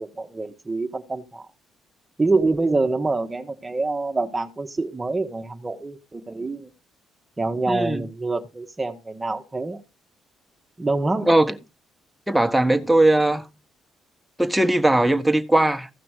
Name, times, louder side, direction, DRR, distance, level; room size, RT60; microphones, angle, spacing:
voice 1, 0.0-1.5 2.2-6.7 7.4-9.8 10.8-11.3, right 3 dB, 25° right, 1.3 m, -26 dB
voice 2, 7.7-8.1 11.3-11.5 12.3-13.5 14.4-15.9, right 1 dB, 5° right, 1.6 m, -19 dB
15.0 x 5.9 x 4.9 m
hypercardioid pair, 55°, 0 cm